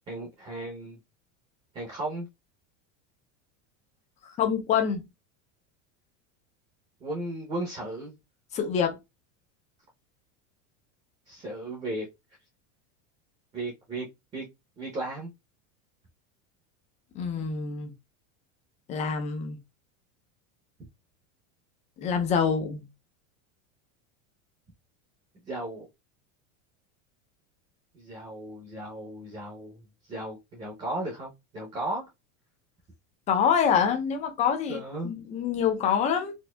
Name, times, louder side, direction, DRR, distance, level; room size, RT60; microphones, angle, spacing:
voice 1, 0.1-1.0 1.7-2.3 7.0-8.2 11.3-12.1 13.5-14.1 14.3-14.5 14.8-15.3 25.5-25.9 27.9-32.1 34.7-35.1, right 1 dB, 15° right, 0.7 m, -35 dB
voice 2, 4.4-5.0 8.5-9.0 17.1-17.9 18.9-19.6 22.0-22.8 33.3-36.3, left 7 dB, 20° left, 0.4 m, -26 dB
4.3 x 2.6 x 2.2 m
supercardioid pair, 165°, 39 cm